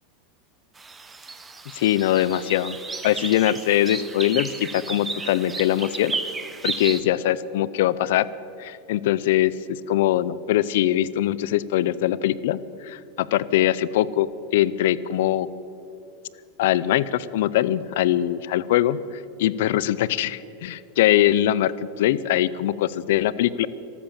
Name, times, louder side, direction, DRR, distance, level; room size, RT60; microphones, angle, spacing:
sound 1, 0.8-7.0, right 4 dB, 15° right, 1.1 m, -33 dB
voice 1, 1.7-2.8 3.0-6.1 6.6-8.3 8.6-15.5 16.6-23.7, left 13 dB, 75° left, 18 dB, 0.5 m, -22 dB
14.0 x 13.0 x 7.4 m, 2.8 s
supercardioid pair, 130°, 0 cm